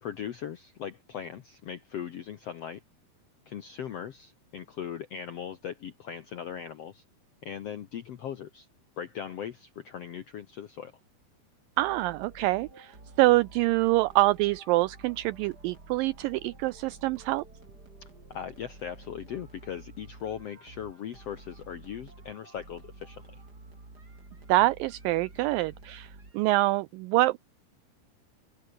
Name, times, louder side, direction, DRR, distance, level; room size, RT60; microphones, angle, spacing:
voice 1, 0.0-2.8 3.5-7.0 7.4-8.7 9.0-10.9 18.0-23.2, left 9 dB, 75° left, 1.4 m, -39 dB
sound 1, 11.8-26.7, right 3 dB, 25° right, 4.8 m, -50 dB
voice 2, 11.8-17.4 24.5-27.4, right 19 dB, 90° right, 1.9 m, -25 dB
open air
omnidirectional pair, 4.5 m